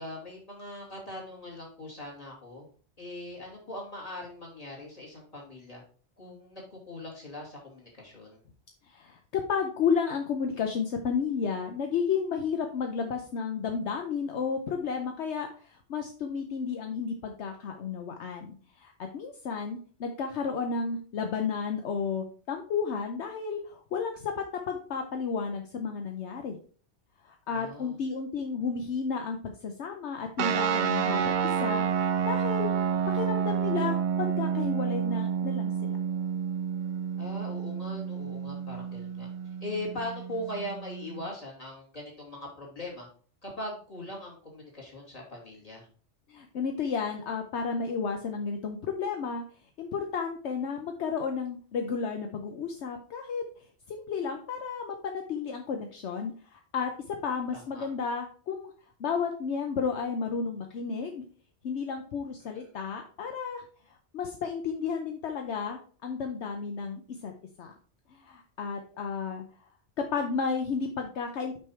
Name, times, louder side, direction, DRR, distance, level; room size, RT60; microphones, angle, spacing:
voice 1, 0.0-2.6 3.0-5.8 6.2-8.4 27.5-27.9 37.2-39.3 39.6-43.1 43.4-45.9 57.5-57.9 62.5-62.7, left 1 dB, 30° left, -2 dB, 2.8 m, -40 dB
voice 2, 8.9-24.3 24.7-26.6 27.2-31.3 31.6-32.7 33.1-36.0 46.3-49.4 49.8-53.4 53.9-58.7 59.0-61.2 61.6-67.3 67.6-67.7 68.1-69.4 70.0-71.6, left 5 dB, 70° left, 4 dB, 1.0 m, -32 dB
sound 1, 30.4-41.3, right 7 dB, 55° right, 0.5 m, -29 dB
6.2 x 5.6 x 4.4 m, 0.43 s
omnidirectional pair, 1.2 m